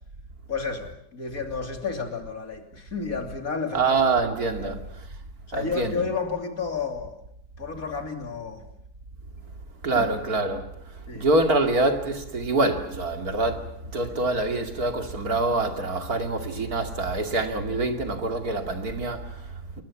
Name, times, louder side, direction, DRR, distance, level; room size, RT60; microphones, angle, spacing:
voice 1, 0.5-4.0 4.6-4.9 5.5-7.2 7.6-8.6 10.0-10.1 11.1-11.3 14.0-14.2, left 5 dB, 55° left, 3.5 m, -31 dB
voice 2, 3.7-5.1 5.5-6.0 9.8-19.8, right 2 dB, 60° right, 3.0 m, -26 dB
29.0 x 22.0 x 7.3 m
omnidirectional pair, 1.8 m